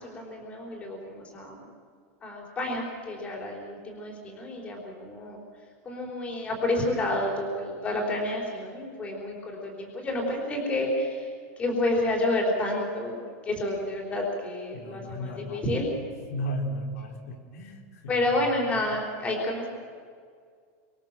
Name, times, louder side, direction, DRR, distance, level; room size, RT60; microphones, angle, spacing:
voice 1, 0.0-1.7 2.2-5.4 5.8-11.3 11.6-13.2 13.5-15.9 18.1-19.7, left 1 dB, 15° left, 0 dB, 4.2 m, -29 dB
voice 2, 14.7-15.8 16.3-18.8, equal, 80° left, 2 dB, 4.2 m, -36 dB
28.5 x 24.5 x 7.5 m, 2.1 s
supercardioid pair, 180°, 8 cm